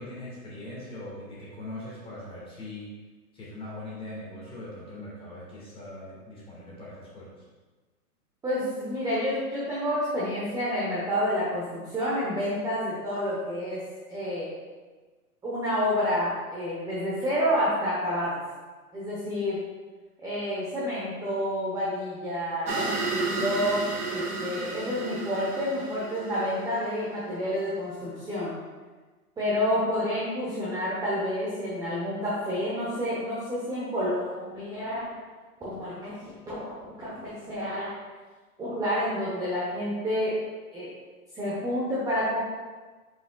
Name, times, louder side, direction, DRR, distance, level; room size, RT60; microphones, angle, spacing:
voice 1, 0.0-2.9 3.3-7.3, left 1 dB, 10° left, -6 dB, 1.8 m, -41 dB
voice 2, 8.4-14.5 15.4-18.4 18.9-19.6 20.2-23.0 23.3-28.6 29.4-35.1 35.6-38.0 38.6-40.4 40.7-40.9 41.3-42.4, equal, 10° right, -8 dB, 0.9 m, -29 dB
sound 1, 22.6-27.2, right 3 dB, 75° right, 1.5 m, -32 dB
7.5 x 5.4 x 2.3 m, 1.3 s
hypercardioid pair, 130°, 45 cm